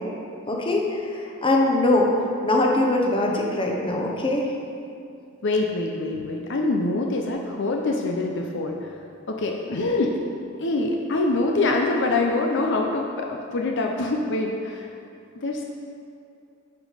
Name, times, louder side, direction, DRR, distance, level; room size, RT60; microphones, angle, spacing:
voice 1, 0.5-2.1 2.4-4.5, left 2 dB, 25° left, 0 dB, 0.9 m, -22 dB
voice 2, 5.4-8.9 9.3-10.1 10.6-14.9 15.4-15.6, left 2 dB, 60° left, 1 dB, 0.6 m, -25 dB
9.5 x 5.1 x 5.0 m, 2.6 s
head